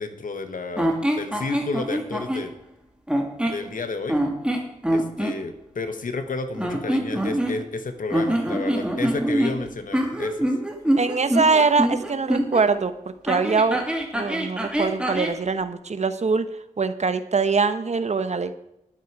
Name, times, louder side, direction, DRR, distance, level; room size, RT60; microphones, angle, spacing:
voice 1, 0.0-2.5 3.5-4.2 4.9-10.5, left 3 dB, 70° left, 9 dB, 1.4 m, -31 dB
sound 1, 0.8-2.5 3.1-3.6 4.1-5.4 6.5-7.8 8.1-12.6 13.3-15.4, right 1 dB, 5° right, 2.4 m, -25 dB
voice 2, 11.0-12.9 13.2-13.8 14.1-16.5 16.8-18.5, right 4 dB, 55° right, 11 dB, 1.1 m, -23 dB
12.0 x 11.5 x 4.8 m, 0.82 s
wide cardioid pair, 80°, 14 cm